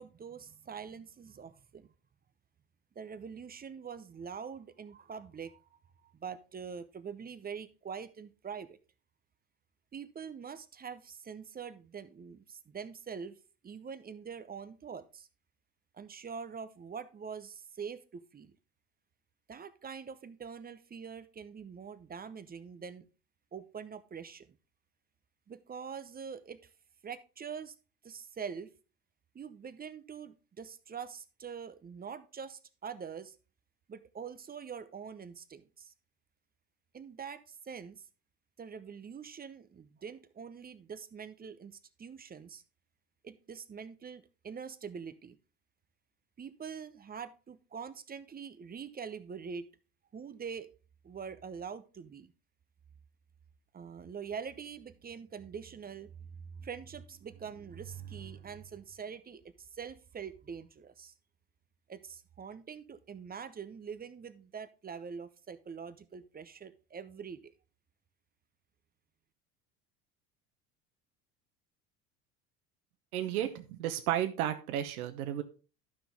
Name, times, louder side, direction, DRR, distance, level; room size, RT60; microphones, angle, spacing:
voice 1, 0.0-1.9 3.0-8.8 9.9-13.4 13.6-15.3 15.9-18.6 19.5-23.0 23.5-24.6 25.5-26.7 27.0-27.7 28.0-28.7 29.3-33.3 33.9-35.9 36.9-38.0 38.6-42.6 43.2-45.4 46.4-49.7 50.1-50.7 51.0-52.3 53.7-56.3 56.6-61.1 61.9-67.5, right 6 dB, 20° right, 14 dB, 0.8 m, -44 dB
voice 2, 73.1-75.4, right 11 dB, 70° right, 8 dB, 1.1 m, -33 dB
12.5 x 6.0 x 3.5 m, 0.33 s
hypercardioid pair, 70°, 45 cm